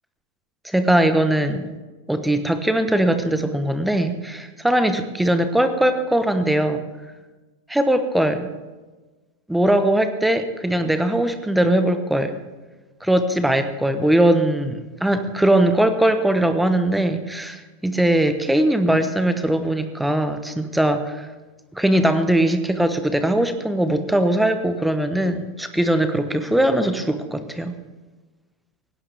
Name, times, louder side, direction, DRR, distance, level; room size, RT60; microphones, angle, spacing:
voice 1, 0.6-1.7 2.1-6.8 7.7-8.5 9.5-12.4 13.0-21.3 21.7-27.7, right 1 dB, 5° right, 9 dB, 1.3 m, -20 dB
18.5 x 17.0 x 3.5 m, 1.2 s
figure-of-eight pair, 90°, 0 cm